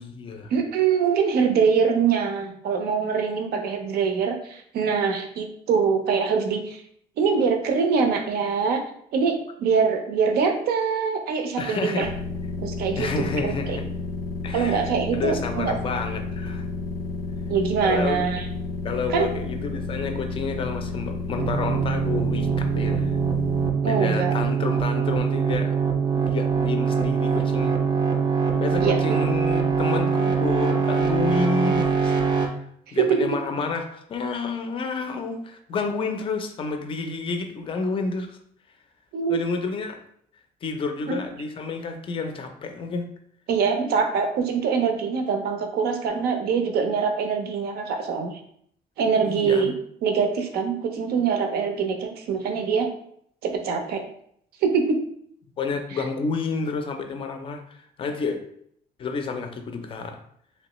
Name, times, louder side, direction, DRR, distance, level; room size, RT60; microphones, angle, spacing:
voice 1, 0.0-0.5 11.6-12.1 13.0-13.8 14.4-16.7 17.8-18.3 18.8-23.2 23.8-25.8 26.2-27.8 28.6-32.5 32.9-38.4 39.3-40.0 40.6-43.1 49.2-49.7 55.6-58.4 59.0-60.2, left 4 dB, 35° left, 6 dB, 0.4 m, -30 dB
voice 2, 0.5-6.8 7.2-8.8 9.1-12.1 12.6-13.8 14.5-15.7 17.5-18.4 19.1-19.3 23.8-24.4 28.8-29.2 32.9-33.3 39.1-39.4 41.1-41.2 43.5-48.4 49.0-49.7 50.0-52.9 53.4-54.0 54.6-55.0, right 6 dB, 80° right, 6 dB, 0.6 m, -24 dB
sound 1, 12.0-23.7, left 3 dB, 85° left, 0.5 m, -31 dB
sound 2, 21.4-32.5, right 6 dB, 30° right, 0.4 m, -23 dB
3.2 x 2.9 x 3.0 m, 0.67 s
cardioid pair, 165°, 16 cm